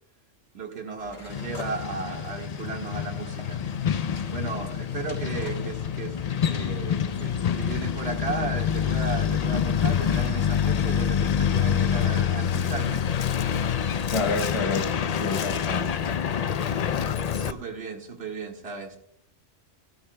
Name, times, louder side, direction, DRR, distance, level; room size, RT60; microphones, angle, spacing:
voice 1, 0.5-3.6 4.3-6.2 6.4-13.0 17.3-19.0, right 4 dB, 55° right, 2.0 m, -35 dB
sound 1, 1.0-10.9, left 2 dB, 85° left, 3.6 m, -47 dB
Truck, 1.3-17.5, left 8 dB, 65° left, 0.3 m, -26 dB
voice 2, 14.0-14.9 15.2-16.0, left 4 dB, 25° left, 1.1 m, -28 dB
16.5 x 13.5 x 2.2 m
omnidirectional pair, 1.3 m